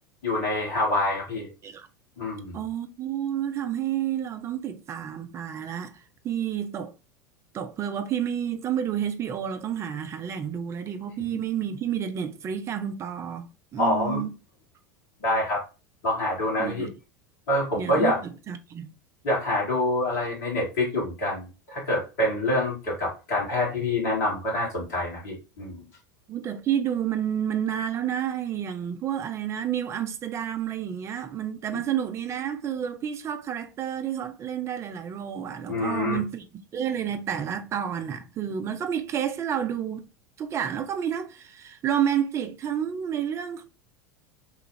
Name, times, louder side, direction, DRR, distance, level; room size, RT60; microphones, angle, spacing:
voice 1, 0.2-1.5 2.2-2.6 13.8-14.2 15.2-15.6 16.0-16.9 17.5-18.2 19.2-25.8 31.7-31.8 35.7-36.2, left 1 dB, 60° left, 1.7 m, -26 dB
voice 2, 2.5-6.9 7.5-14.3 16.6-16.9 17.8-18.9 26.3-36.4 36.7-40.1 40.4-43.6, right 9 dB, 30° right, 0.5 m, -30 dB
3.1 x 2.4 x 3.0 m
figure-of-eight pair, 80°, 10 cm